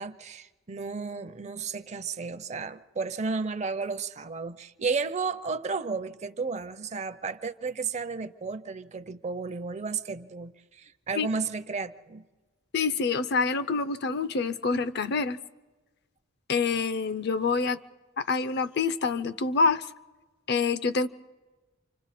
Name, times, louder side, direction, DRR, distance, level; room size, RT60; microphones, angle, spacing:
voice 1, 0.0-12.2, right 4 dB, 35° right, 0.6 m, -33 dB
voice 2, 12.7-15.4 16.5-17.8 18.2-19.8 20.5-21.1, left 4 dB, 55° left, 0.6 m, -26 dB
28.5 x 25.5 x 4.2 m
head